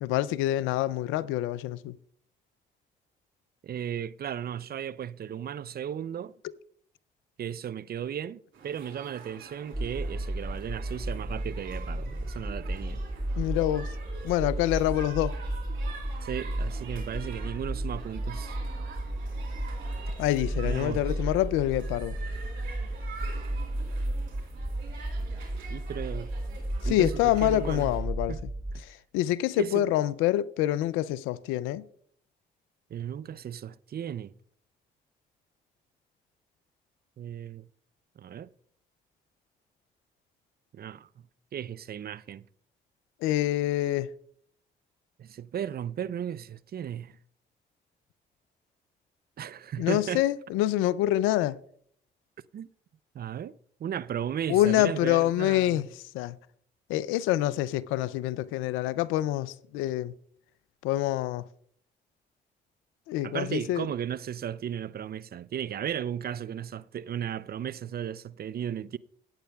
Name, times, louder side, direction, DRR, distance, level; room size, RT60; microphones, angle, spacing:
voice 1, 0.0-2.0 13.4-13.9 14.2-15.3 20.2-22.2 26.8-28.5 28.8-31.8 43.2-44.1 49.8-51.6 54.5-55.9 56.1-56.4 56.9-60.1 60.8-61.4 63.1-63.9, left 14 dB, 90° left, 0.4 m, -26 dB
voice 2, 3.6-6.4 7.4-13.0 16.2-18.6 20.6-21.0 25.7-26.3 26.8-27.9 28.3-28.4 29.6-29.9 32.9-34.3 37.2-37.7 38.2-38.5 40.7-41.1 41.5-42.4 45.2-47.2 49.4-50.2 52.5-52.7 53.1-55.9 63.2-69.0, right 9 dB, 50° right, 0.5 m, -35 dB
sound 1, 8.5-28.0, right 5 dB, 80° right, 3.7 m, -47 dB
sound 2, 9.7-28.7, right 1 dB, 5° right, 0.8 m, -33 dB
16.0 x 8.9 x 2.3 m
supercardioid pair, 50°, 20 cm